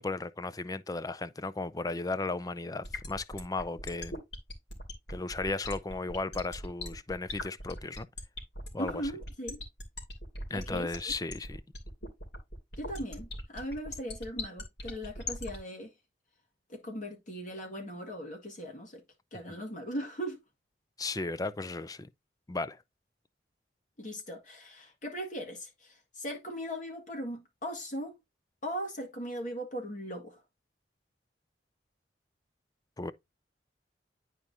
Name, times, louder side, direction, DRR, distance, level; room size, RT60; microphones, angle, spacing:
voice 1, 0.0-4.2 5.1-8.1 8.7-9.0 10.5-11.6 21.0-22.1 22.5-22.8 33.0-33.1, left 3 dB, 20° left, 0.5 m, -35 dB
sound 1, 2.8-15.6, left 2 dB, 65° left, 2.8 m, -39 dB
voice 2, 8.8-9.6 10.5-11.1 12.8-15.9 16.7-19.0 19.3-20.4 24.0-28.2 28.6-30.4, equal, 45° left, 1.8 m, -39 dB
10.5 x 4.7 x 2.6 m
head